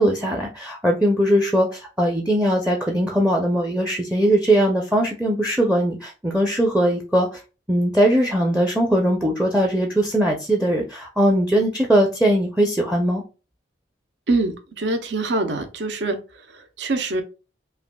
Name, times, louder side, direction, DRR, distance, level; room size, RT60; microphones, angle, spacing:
voice 1, 0.0-7.3 7.7-13.2, right 1 dB, 5° right, 2 dB, 0.5 m, -20 dB
voice 2, 14.3-17.2, right 2 dB, 75° right, 7 dB, 0.6 m, -25 dB
5.6 x 2.4 x 2.2 m, 0.32 s
head